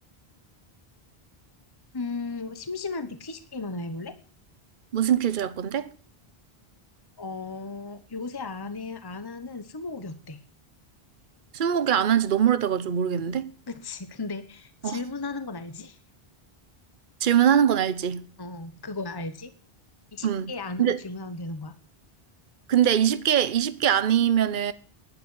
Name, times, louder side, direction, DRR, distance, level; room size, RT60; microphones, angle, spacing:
voice 1, 1.9-4.1 7.2-10.4 13.7-16.0 18.4-19.5 20.1-21.7, left 3 dB, 25° left, 1.0 m, -35 dB
voice 2, 4.9-5.9 11.5-13.5 14.8-15.0 17.2-18.2 20.2-20.5 20.8-21.0 22.7-24.7, right 9 dB, 55° right, 1.0 m, -22 dB
12.0 x 10.0 x 8.1 m
omnidirectional pair, 1.0 m